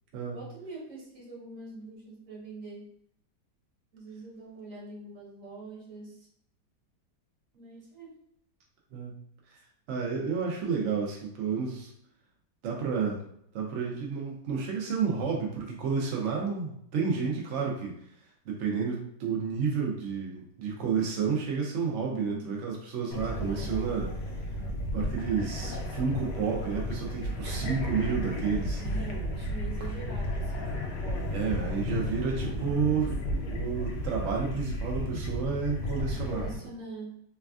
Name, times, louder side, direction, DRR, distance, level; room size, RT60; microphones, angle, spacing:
voice 1, 0.3-2.9 3.9-6.3 7.5-8.1 22.0-22.5 23.3-23.7 28.8-31.4 36.1-37.3, right 2 dB, 55° right, -5 dB, 1.2 m, -44 dB
voice 2, 9.9-11.9 12.6-13.2 13.5-17.9 18.5-24.1 24.9-28.8 31.3-33.1 33.5-36.5, right 5 dB, 75° right, -1 dB, 0.6 m, -30 dB
sound 1, 23.1-36.5, equal, 75° left, 1.1 m, -33 dB
3.2 x 2.3 x 2.3 m, 0.71 s
omnidirectional pair, 1.8 m